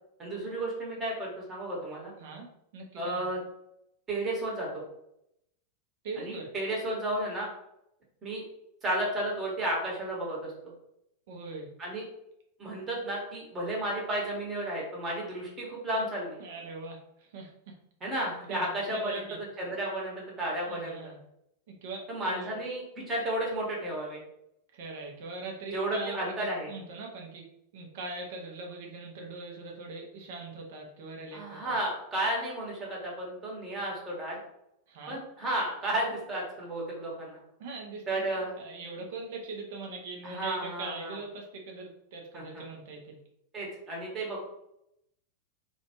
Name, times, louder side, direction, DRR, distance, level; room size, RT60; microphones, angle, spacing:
voice 1, 0.2-2.1 3.0-3.4 4.1-4.7 6.2-7.5 8.2-8.4 8.8-10.7 11.8-12.0 12.6-16.4 18.0-19.2 19.6-21.1 22.1-24.2 25.7-26.7 31.3-34.4 35.1-37.4 38.1-38.5 40.2-41.2 42.3-42.6 43.5-44.5, right 1 dB, 20° right, -3 dB, 1.1 m, -33 dB
voice 2, 2.7-3.3 6.0-6.5 11.3-11.7 16.4-17.8 18.5-19.4 20.7-21.2 21.7-22.6 24.7-31.7 34.9-35.2 37.6-38.3 38.6-43.2, right 3 dB, 50° right, 0 dB, 0.6 m, -41 dB
2.5 x 2.2 x 2.9 m, 0.80 s
figure-of-eight pair, 90°, 0 cm